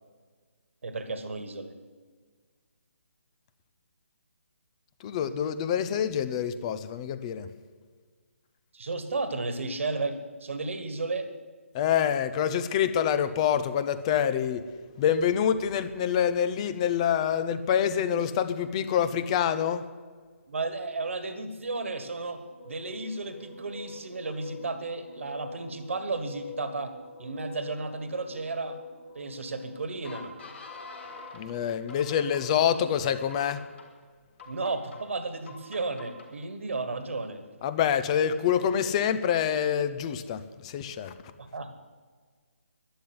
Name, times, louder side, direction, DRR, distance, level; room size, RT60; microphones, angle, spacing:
voice 1, 0.8-1.7 8.7-11.3 20.5-22.4 22.6-26.9 27.2-28.8 29.1-30.3 34.5-37.4 41.4-41.7, right 3 dB, 60° right, 9 dB, 1.6 m, -33 dB
voice 2, 5.0-7.5 11.7-14.6 15.0-19.8 31.3-33.6 37.6-41.1, left 8 dB, 25° left, 12 dB, 0.7 m, -26 dB
sound 1, 22.4-31.4 31.9-32.6 33.0-33.9 34.4-35.0 35.5-36.3, left 3 dB, 50° left, 3.8 m, -45 dB
11.5 x 10.0 x 9.6 m, 1.5 s
figure-of-eight pair, 140°, 8 cm